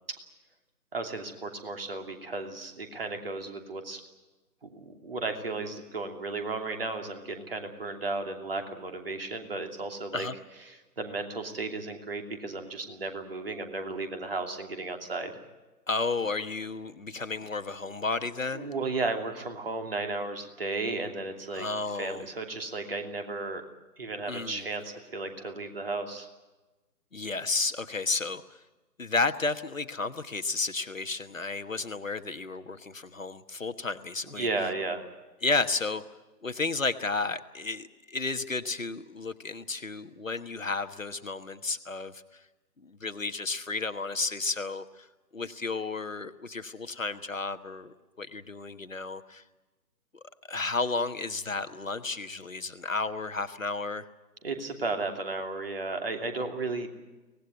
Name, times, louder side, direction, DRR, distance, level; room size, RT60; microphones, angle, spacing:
voice 1, 0.9-4.0 4.6-10.3 10.7-15.3 18.5-21.7 21.9-23.6 24.0-26.3 34.3-35.0 54.4-56.9, right 3 dB, 35° right, 5 dB, 2.8 m, -34 dB
voice 2, 15.9-18.7 21.5-22.2 24.3-24.6 27.1-28.6 29.0-34.5 35.4-36.0 36.4-42.1 42.8-45.1 45.3-49.4 50.5-54.1, left 3 dB, 50° left, 10 dB, 1.3 m, -32 dB
25.0 x 18.5 x 9.3 m, 1.1 s
figure-of-eight pair, 155°, 49 cm